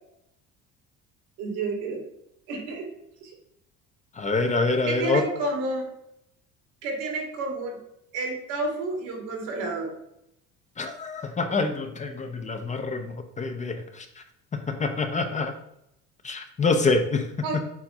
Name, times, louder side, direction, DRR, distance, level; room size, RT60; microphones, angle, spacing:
voice 1, 1.4-2.0 2.5-2.9 3.2-3.3 4.9-5.9 6.8-7.8 8.1-9.9 17.4-17.6, right 3 dB, 80° right, 1 dB, 2.1 m, -30 dB
voice 2, 4.2-5.2 10.8-14.1 14.7-15.5 16.2-17.3, left 3 dB, 25° left, 6 dB, 0.7 m, -26 dB
7.2 x 2.6 x 5.4 m, 0.79 s
cardioid pair, 115°, 30 cm